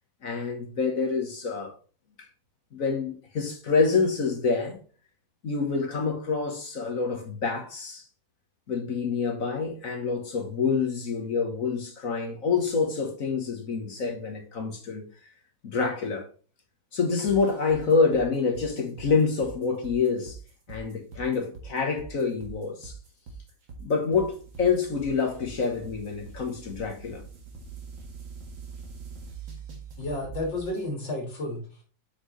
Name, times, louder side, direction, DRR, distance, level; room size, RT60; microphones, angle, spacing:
voice 1, 0.2-1.7 2.2-2.3 2.7-4.8 5.4-8.0 8.7-15.0 15.6-16.3 16.9-20.4 20.7-22.9 23.8-27.2, left 5 dB, 45° left, 1.5 m, -27 dB
sound 1, 17.3-30.8, right 5 dB, 70° right, 2.5 m, -43 dB
voice 2, 30.0-31.8, left 1 dB, 65° left, 2.7 m, -32 dB
8.3 x 6.1 x 3.2 m
omnidirectional pair, 2.2 m